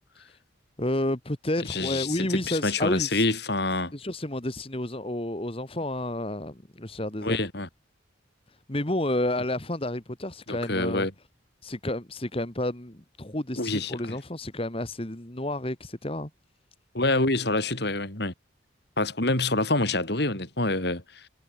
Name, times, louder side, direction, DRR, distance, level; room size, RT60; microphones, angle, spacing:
voice 1, 0.8-3.3 3.9-7.4 8.7-11.1 11.6-16.3, left 1 dB, 30° left, 1.8 m, -30 dB
voice 2, 1.6-3.9 7.2-7.7 10.5-11.1 13.6-14.2 16.9-18.3 19.0-21.3, left 2 dB, 55° left, 3.9 m, -27 dB
head